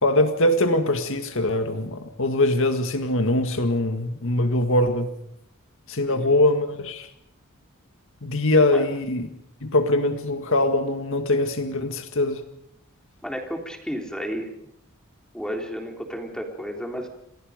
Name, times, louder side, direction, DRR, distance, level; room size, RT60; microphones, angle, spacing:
voice 1, 0.0-5.1 5.9-7.1 8.2-9.3 9.6-12.4, left 1 dB, 60° left, 7 dB, 2.0 m, -22 dB
voice 2, 13.2-14.5 15.3-17.1, equal, 5° left, 2 dB, 3.7 m, -32 dB
29.0 x 27.0 x 5.2 m, 0.75 s
head